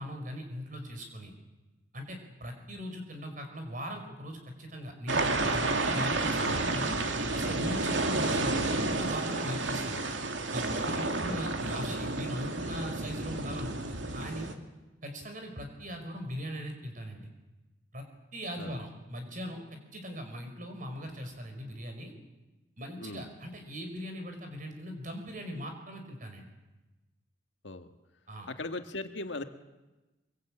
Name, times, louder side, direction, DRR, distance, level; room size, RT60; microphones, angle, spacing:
voice 1, 0.0-1.3 1.9-7.0 7.3-10.1 10.5-14.5 15.0-17.3 17.9-18.0 18.3-22.1 22.8-26.5 28.3-28.5, equal, 45° right, 5 dB, 5.1 m, -40 dB
sound 1, 5.1-14.5, right 2 dB, 80° right, 2.3 m, -31 dB
voice 2, 23.0-23.3 27.6-27.9 28.5-29.4, left 2 dB, 75° left, 7 dB, 1.8 m, -39 dB
24.0 x 23.5 x 8.8 m, 1.1 s
head